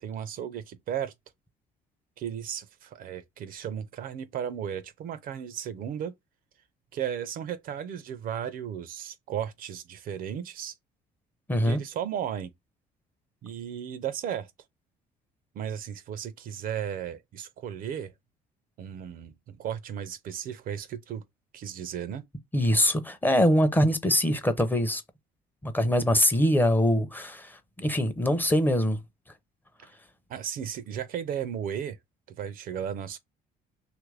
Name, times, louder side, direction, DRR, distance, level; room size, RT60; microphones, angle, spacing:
voice 1, 0.0-1.1 2.2-6.1 6.9-10.7 11.6-12.5 13.4-14.5 15.5-18.1 18.8-21.2 21.5-22.2 30.3-32.0 32.3-33.2, right 9 dB, 55° right, 0.4 m, -35 dB
voice 2, 11.5-11.8 22.5-25.0 25.6-29.0, equal, 10° left, 0.5 m, -23 dB
2.9 x 2.5 x 3.2 m
cardioid pair, 110°, 17 cm